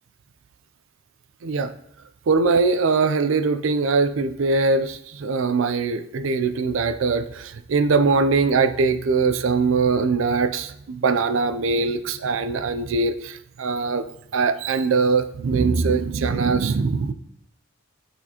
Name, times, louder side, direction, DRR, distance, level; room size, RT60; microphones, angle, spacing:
voice 1, 2.3-14.1 14.3-17.1, right 4 dB, 75° right, 11 dB, 0.4 m, -22 dB
9.4 x 4.2 x 2.9 m, 0.74 s
head